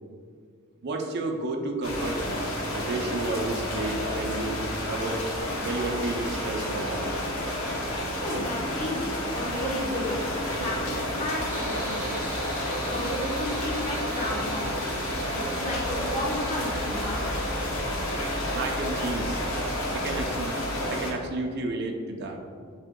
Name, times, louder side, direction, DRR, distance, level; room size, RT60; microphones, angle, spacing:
voice 1, 0.8-2.4 2.7-7.1 18.5-19.4 19.9-20.6 20.9-22.4, right 2 dB, 55° right, 2 dB, 0.5 m, -32 dB
sound 1, 1.8-21.1, left 1 dB, 85° left, 0.9 m, -30 dB
voice 2, 8.2-10.2 10.5-12.2 12.8-14.9 15.3-17.3, left 1 dB, 35° left, -4 dB, 1.0 m, -33 dB
sound 2, 9.3-19.9, equal, 10° left, 1.5 m, -45 dB
sound 3, 11.5-17.2, right 1 dB, 10° right, 0.7 m, -45 dB
6.2 x 3.5 x 2.2 m, 2.1 s
head